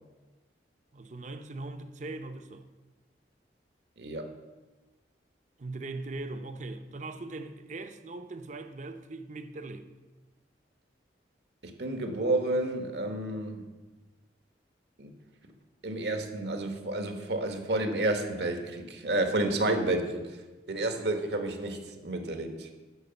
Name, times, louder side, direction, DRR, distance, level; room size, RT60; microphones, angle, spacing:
voice 1, 0.9-2.7 5.6-9.9, right 2 dB, 45° right, 0.6 m, -40 dB
voice 2, 4.0-4.3 11.6-13.6 15.0-15.1 15.8-20.4 20.7-22.7, right 2 dB, 70° right, 1.2 m, -30 dB
11.0 x 4.7 x 6.9 m
head